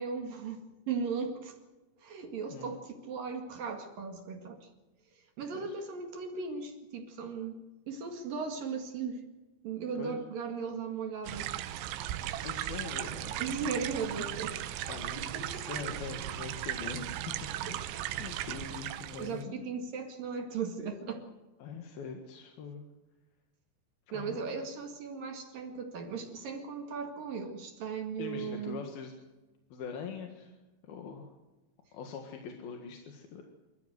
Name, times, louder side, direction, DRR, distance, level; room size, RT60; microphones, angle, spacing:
voice 1, 0.0-1.5 2.0-4.6 5.4-9.2 9.6-11.5 13.4-14.8 15.3-15.8 18.1-18.2 19.2-21.3 24.1-28.8, right 5 dB, 55° right, 4 dB, 3.3 m, -37 dB
sound 1, 11.3-19.4, right 12 dB, 85° right, 3.4 m, -37 dB
voice 2, 12.4-13.6 14.9-19.9 21.6-22.9 24.1-24.4 28.2-29.1 29.7-30.5 30.8-31.3 31.9-33.4, left 5 dB, 60° left, 3 dB, 3.3 m, -43 dB
26.5 x 14.5 x 8.0 m, 1.1 s
omnidirectional pair, 5.3 m